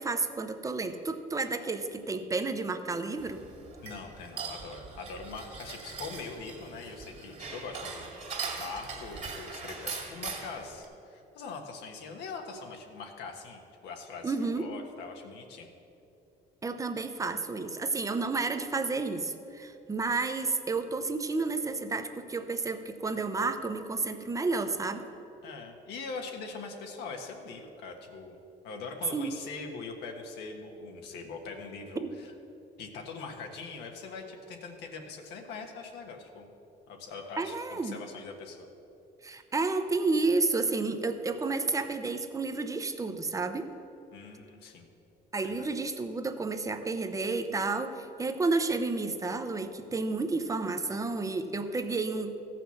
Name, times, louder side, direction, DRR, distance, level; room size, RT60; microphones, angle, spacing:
voice 1, 0.0-3.4 14.2-14.7 16.6-25.0 29.1-29.4 32.0-32.1 37.4-38.0 39.2-43.7 45.3-52.4, right 3 dB, 20° right, 8 dB, 0.8 m, -31 dB
sound 1, 3.2-10.9, right 5 dB, 40° right, 2.2 m, -41 dB
voice 2, 3.8-8.1 8.6-15.7 25.4-32.3 32.8-36.5 36.9-38.7 44.1-44.9 45.4-45.7, left 4 dB, 80° left, 3 dB, 1.4 m, -42 dB
14.0 x 5.8 x 7.0 m, 2.8 s
cardioid pair, 110°, 17 cm